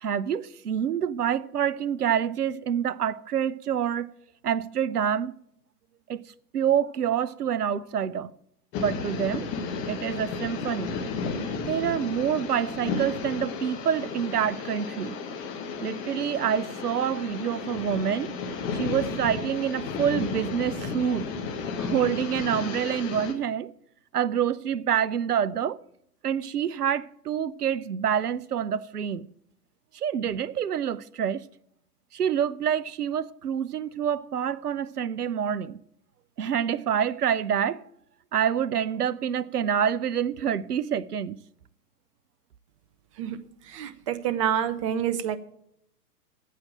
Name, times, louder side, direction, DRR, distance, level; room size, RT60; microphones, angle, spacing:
voice 1, 0.0-4.1 4.4-5.3 6.1-6.2 6.5-8.3 8.8-9.5 9.9-11.0 11.7-15.1 15.8-18.3 18.7-21.3 21.8-23.7 24.1-25.8 26.2-29.3 29.9-31.4 32.1-35.8 36.4-37.8 38.3-41.4, right 8 dB, 70° right, 0.7 m, -27 dB
sound 1, 8.7-23.3, left 4 dB, 25° left, 1.5 m, -33 dB
voice 2, 43.7-45.4, right 9 dB, 20° right, 0.6 m, -27 dB
8.7 x 8.5 x 8.9 m
figure-of-eight pair, 115°, 48 cm